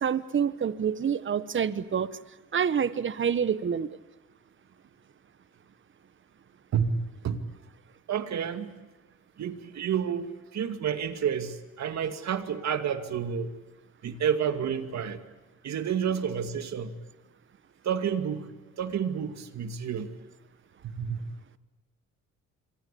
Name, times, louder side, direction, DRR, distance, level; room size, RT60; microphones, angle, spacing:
voice 1, 0.0-2.1 2.5-3.9, right 7 dB, 40° right, 14 dB, 1.2 m, -27 dB
voice 2, 6.7-7.5 8.1-8.7 9.4-13.5 14.0-15.2 15.6-17.0 17.8-18.5 18.8-20.1 20.8-21.3, right 7 dB, 65° right, 8 dB, 2.4 m, -30 dB
27.0 x 25.0 x 8.6 m, 1.1 s
cardioid pair, 90°, 30 cm